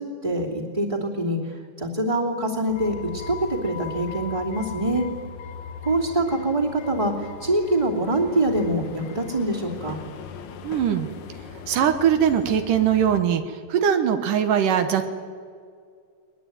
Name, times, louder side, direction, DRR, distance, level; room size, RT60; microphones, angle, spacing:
voice 1, 0.0-5.0 5.8-10.0, right 1 dB, 15° right, -6 dB, 2.5 m, -25 dB
sound 1, 2.7-13.2, left 6 dB, 85° left, 1.0 m, -39 dB
voice 2, 10.6-11.2 11.7-13.4 13.7-15.1, right 8 dB, 80° right, 8 dB, 2.8 m, -21 dB
22.0 x 20.5 x 9.3 m, 2.1 s
omnidirectional pair, 3.7 m